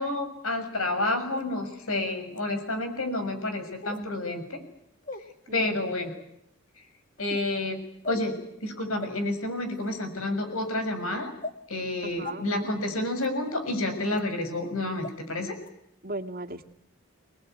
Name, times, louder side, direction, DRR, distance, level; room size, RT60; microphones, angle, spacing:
voice 1, 0.0-4.6 5.5-6.1 7.2-7.8 8.1-8.3 8.6-11.3 11.7-15.6, left 2 dB, 90° left, 8 dB, 6.7 m, -29 dB
sound 1, 1.3-1.4 2.3-2.4 3.8-4.1 5.0-5.2 6.0-6.2 7.2-7.5 8.0-8.3 9.0-9.1 9.7-9.9 10.6-10.7 11.4-11.6 12.2-12.3 13.2-13.3 14.1-14.2 15.0-15.1 15.6-15.7, left 2 dB, 40° left, 1.8 m, -39 dB
voice 2, 5.5-5.9 12.0-12.7 16.0-16.6, right 2 dB, 45° right, 3 dB, 2.3 m, -38 dB
26.5 x 21.0 x 9.4 m, 0.76 s
head